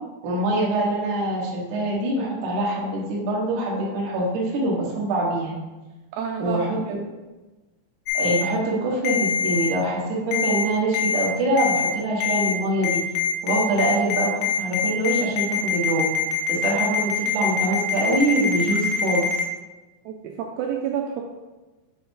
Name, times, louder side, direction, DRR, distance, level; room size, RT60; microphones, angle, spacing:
voice 1, 0.2-5.6 6.4-7.0 8.1-13.0 13.4-16.0 16.5-19.3, right 1 dB, 70° right, -4 dB, 1.9 m, -24 dB
voice 2, 6.1-7.0 20.1-21.2, right 7 dB, 90° right, 1 dB, 2.5 m, -29 dB
Ringtone, 8.1-8.4 9.0-9.7 10.3-10.6 10.9-11.3 11.6-11.9 12.2-12.5 12.8-19.4, left 7 dB, 85° left, 3.2 m, -23 dB
7.6 x 4.0 x 3.7 m, 1.1 s
omnidirectional pair, 5.6 m